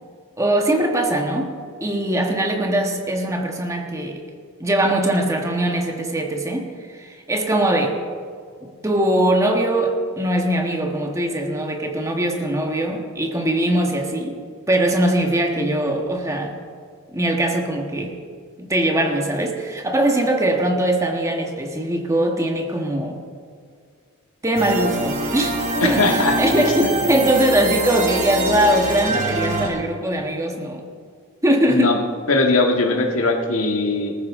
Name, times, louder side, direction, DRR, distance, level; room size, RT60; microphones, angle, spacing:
voice 1, 0.4-1.5 1.8-4.2 4.6-8.0 8.6-14.4 14.7-16.6 17.1-18.2 18.6-23.2 24.4-30.8 31.4-32.0, right 1 dB, 15° right, 2 dB, 1.5 m, -21 dB
sound 1, 24.5-29.7, right 1 dB, 35° right, 2.9 m, -24 dB
voice 2, 25.8-26.9 31.7-32.0 32.3-34.2, left 2 dB, 75° left, 3 dB, 1.8 m, -20 dB
19.0 x 14.5 x 3.7 m, 2.1 s
head